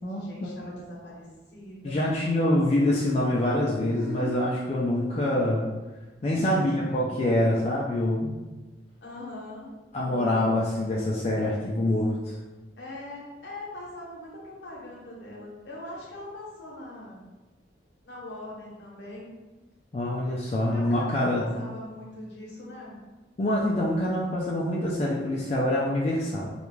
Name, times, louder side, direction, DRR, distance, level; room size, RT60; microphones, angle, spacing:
voice 1, 0.0-2.0 3.8-4.4 6.5-6.9 9.0-9.7 10.0-10.6 12.8-17.2 18.0-19.4 20.7-23.0, left 1 dB, 70° left, -4 dB, 0.8 m, -41 dB
voice 2, 1.8-5.7 6.2-8.3 9.9-12.1 19.9-21.5 23.4-26.5, left 1 dB, 35° left, -5 dB, 0.3 m, -25 dB
2.4 x 2.2 x 3.0 m, 1.2 s
head